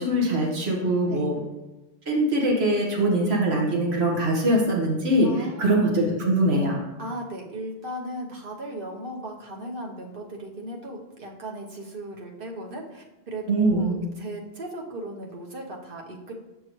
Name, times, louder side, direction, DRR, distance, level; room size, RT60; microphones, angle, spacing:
voice 1, 0.0-1.3 2.1-6.8 13.5-14.0, right 1 dB, 80° right, -2 dB, 1.7 m, -22 dB
voice 2, 5.2-5.7 7.0-16.3, right 1 dB, 60° right, 0 dB, 1.2 m, -37 dB
7.6 x 6.1 x 3.1 m, 1.0 s
omnidirectional pair, 1.1 m